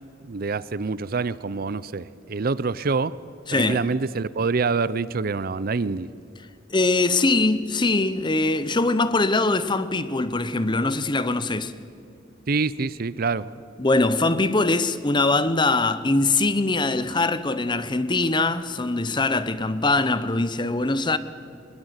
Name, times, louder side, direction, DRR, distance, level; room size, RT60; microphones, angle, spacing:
voice 1, 0.2-3.2 3.5-6.1 12.5-13.5, right 4 dB, 50° right, 0.5 m, -26 dB
voice 2, 3.5-3.8 6.7-11.7 13.8-21.2, left 2 dB, 25° left, 0.8 m, -22 dB
22.0 x 21.5 x 8.1 m
head